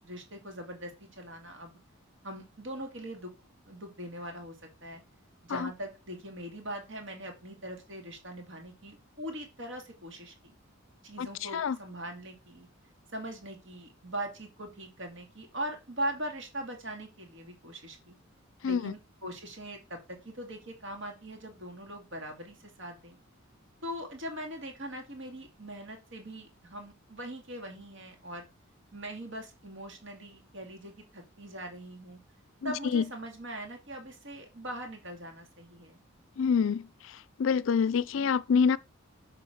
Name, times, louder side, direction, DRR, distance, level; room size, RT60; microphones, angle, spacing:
voice 1, 0.0-1.8 2.2-3.3 3.7-4.5 4.8-5.0 5.4-10.5 11.0-12.7 13.1-18.2 18.6-20.0 20.2-23.2 23.8-28.5 28.9-32.2 32.6-36.0, right 1 dB, 60° right, 2.3 m, -41 dB
voice 2, 18.6-18.9 32.6-33.0 36.4-36.9 37.4-38.8, left 6 dB, 65° left, 0.4 m, -26 dB
8.4 x 3.9 x 6.4 m
head